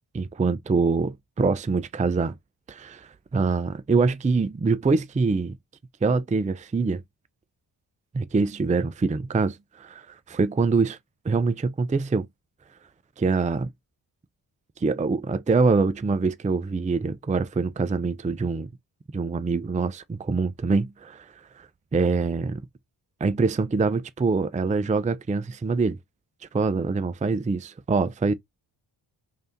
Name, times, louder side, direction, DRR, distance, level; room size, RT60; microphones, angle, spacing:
voice 1, 0.1-2.3 2.7-5.6 6.0-7.0 8.1-10.0 10.3-11.0 11.2-12.3 13.2-13.7 14.8-18.7 19.1-21.2 21.6-21.7 21.9-22.6 23.2-26.0 26.5-28.3, right 4 dB, 15° right, 0.5 m, -24 dB
3.3 x 2.7 x 4.4 m
supercardioid pair, 40°, 48 cm